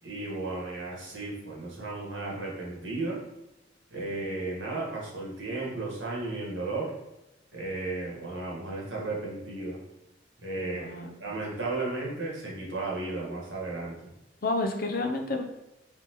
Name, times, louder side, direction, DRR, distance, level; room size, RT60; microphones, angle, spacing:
voice 1, 0.0-3.2 3.9-6.9 7.5-9.8 10.4-10.9 11.2-14.1, right 2 dB, 85° right, -3 dB, 1.6 m, -34 dB
voice 2, 10.6-11.1 14.4-15.4, left 2 dB, 50° left, 5 dB, 0.5 m, -30 dB
4.4 x 3.4 x 3.0 m, 0.94 s
head